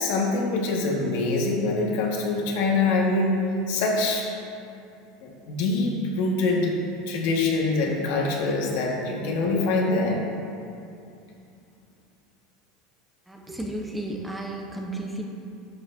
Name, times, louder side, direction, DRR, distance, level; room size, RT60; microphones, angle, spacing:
voice 1, 0.0-4.2 5.2-6.7 7.1-10.2, left 3 dB, 70° left, -2 dB, 1.5 m, -24 dB
voice 2, 13.3-15.2, right 1 dB, 5° right, 1 dB, 0.7 m, -33 dB
10.5 x 6.8 x 2.7 m, 2.5 s
supercardioid pair, 125°, 0 cm